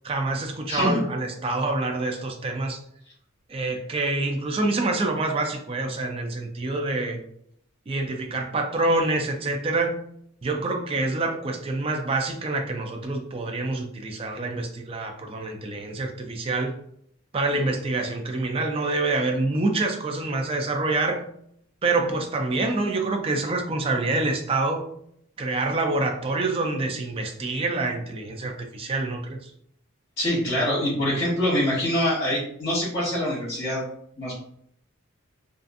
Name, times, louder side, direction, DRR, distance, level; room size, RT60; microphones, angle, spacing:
voice 1, 0.0-2.8 3.5-7.2 7.9-10.0 10.4-16.7 17.3-21.2 21.8-24.8 25.4-29.5, right 2 dB, 25° right, 3 dB, 0.3 m, -26 dB
voice 2, 0.7-1.0 30.2-33.8 34.2-34.3, left 1 dB, 30° left, -9 dB, 1.2 m, -24 dB
2.5 x 2.4 x 2.5 m, 0.69 s
head